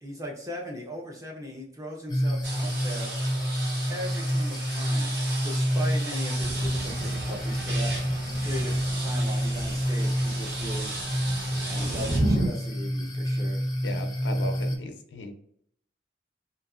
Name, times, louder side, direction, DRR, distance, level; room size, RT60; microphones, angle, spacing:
voice 1, 0.0-3.1 3.9-5.1 5.4-7.9 8.4-10.9 11.6-13.6, equal, 20° right, -1 dB, 0.6 m, -38 dB
sound 1, 2.1-14.8, equal, 25° left, 0.4 m, -28 dB
sound 2, 2.4-12.2, right 2 dB, 80° right, 1.2 m, -37 dB
Thunder / Rain, 6.4-12.5, right 1 dB, 60° right, 0.8 m, -33 dB
voice 2, 13.8-15.3, left 1 dB, 80° left, 6 dB, 0.5 m, -37 dB
2.7 x 2.6 x 2.4 m, 0.66 s
head